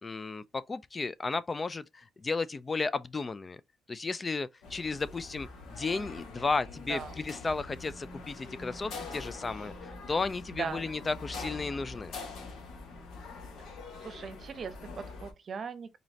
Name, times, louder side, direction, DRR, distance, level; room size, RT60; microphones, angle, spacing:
voice 1, 0.0-3.6 3.9-12.1, left 4 dB, 30° left, 0.3 m, -34 dB
sound 1, 4.6-15.3, left 3 dB, 75° left, 1.3 m, -44 dB
voice 2, 10.6-10.9 14.0-15.9, right 6 dB, 50° right, 0.8 m, -39 dB
3.9 x 3.1 x 2.7 m
cardioid pair, 90°, 0 cm